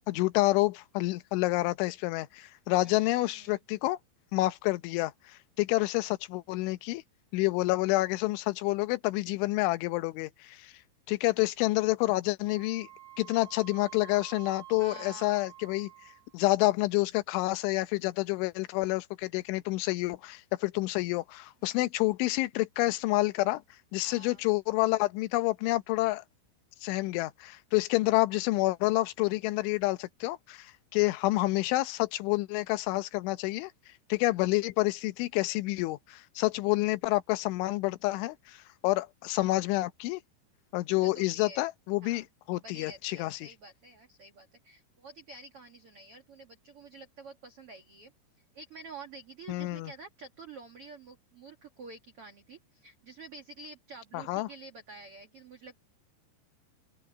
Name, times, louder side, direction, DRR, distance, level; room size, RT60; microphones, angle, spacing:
voice 1, 0.1-4.0 4.3-7.0 7.3-10.7 11.1-12.9 13.2-15.9 16.3-23.6 23.9-26.2 26.8-33.7 34.1-40.2 40.7-43.4 49.5-49.9 54.1-54.5, left 20 dB, 85° left, 3.3 m, -28 dB
voice 2, 2.8-3.6 14.8-15.4 21.6-21.8 24.0-24.4 34.1-34.2 40.9-41.6 42.0-42.2 42.6-48.1 48.5-55.8, right 3 dB, 70° right, 1.3 m, -49 dB
Wind instrument woodwind instrument, 12.5-16.4, right 16 dB, 20° right, 4.2 m, -49 dB
open air
omnidirectional pair, 5.3 m